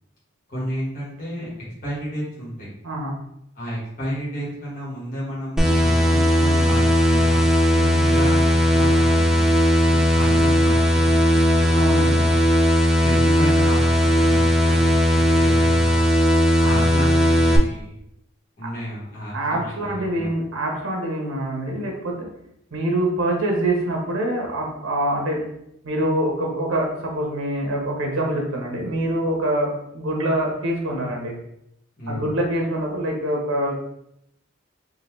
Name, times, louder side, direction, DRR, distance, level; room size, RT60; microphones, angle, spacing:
voice 1, 0.5-1.5 1.8-2.7 3.5-7.5 8.0-12.4 13.0-16.1 16.6-18.0 18.6-20.3 32.0-32.3, equal, 40° left, -8 dB, 1.4 m, -31 dB
voice 2, 2.8-3.1 7.7-8.0 11.7-12.2 18.6-18.7 19.3-22.3 22.7-25.4 25.8-31.3 32.1-33.7, right 1 dB, 80° right, 0 dB, 0.9 m, -25 dB
sound 1, 5.6-17.6, equal, ahead, 0.3 m, -17 dB
3.8 x 2.6 x 3.1 m, 0.78 s
head